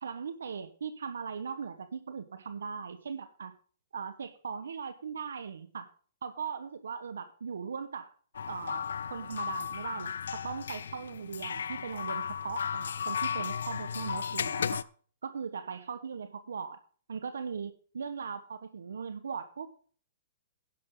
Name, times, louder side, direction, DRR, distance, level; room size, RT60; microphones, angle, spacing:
voice 1, 0.0-3.5 3.9-5.9 6.2-8.1 8.5-8.8 9.1-10.1 10.4-14.9 15.2-16.8 17.1-19.9, right 6 dB, 90° right, 10 dB, 1.4 m, -39 dB
sound 1, 8.3-14.8, left 7 dB, 85° left, 0.6 m, -35 dB
11.5 x 11.0 x 3.9 m, 0.43 s
hypercardioid pair, 150°, 0 cm